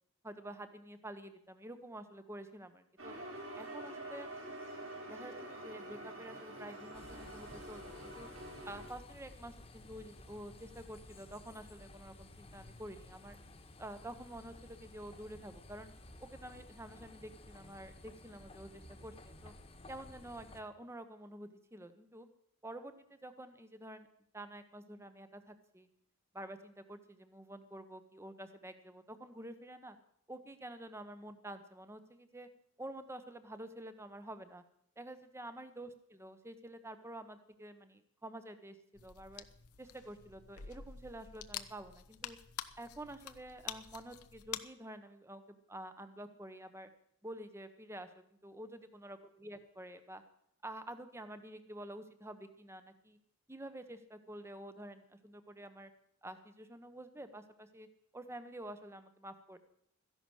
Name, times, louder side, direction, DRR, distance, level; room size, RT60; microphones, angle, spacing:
voice 1, 0.2-3.1 3.6-4.3 5.1-8.3 8.7-13.4 13.8-15.9 16.2-19.5 19.9-22.3 22.6-24.1 24.3-25.9 26.3-30.0 30.3-32.5 32.8-34.6 35.0-39.4 39.8-42.4 42.8-46.9 47.2-50.2 50.6-53.2 53.5-55.9 56.2-57.9 58.1-59.6, right 1 dB, 10° right, 10 dB, 0.9 m, -49 dB
sound 1, 3.0-8.9, right 1 dB, 60° right, 3.9 m, -47 dB
sound 2, 6.9-20.6, left 1 dB, 25° left, 1.4 m, -55 dB
sound 3, 39.0-44.6, left 10 dB, 80° left, 0.8 m, -47 dB
14.0 x 11.0 x 6.3 m, 0.72 s
head